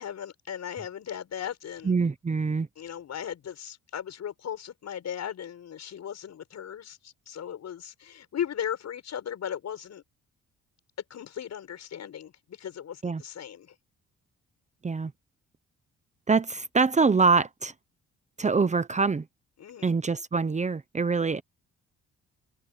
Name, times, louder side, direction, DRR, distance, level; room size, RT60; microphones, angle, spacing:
voice 1, 0.0-1.9 2.8-10.0 11.1-13.7 19.6-19.9, left 9 dB, 60° left, 7.1 m, -37 dB
voice 2, 1.9-2.7 13.0-13.2 14.8-15.1 16.3-17.7 18.4-19.2 19.8-21.4, right 4 dB, 25° right, 0.9 m, -24 dB
cardioid pair, 90°, 30 cm